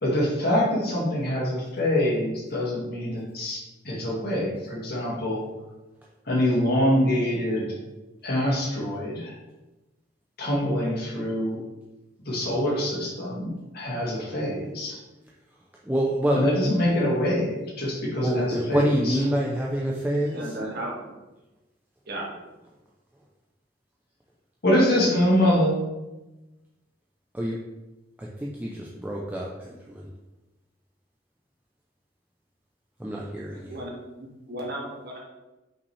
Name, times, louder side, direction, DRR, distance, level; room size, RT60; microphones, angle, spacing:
voice 1, 0.0-3.6 3.8-5.4 6.3-7.7 8.2-9.3 10.4-11.6 12.2-15.0 16.3-19.3 24.6-25.7, left 1 dB, 55° left, -4 dB, 2.0 m, -25 dB
voice 2, 15.8-16.4 18.2-20.6 27.3-27.6 28.2-30.1 33.0-33.8, equal, 10° right, -3 dB, 0.5 m, -27 dB
voice 3, 20.3-20.9 22.1-22.3 33.5-33.9 34.2-35.2, right 1 dB, 55° right, -3 dB, 1.7 m, -34 dB
5.7 x 5.4 x 3.3 m, 1.1 s
head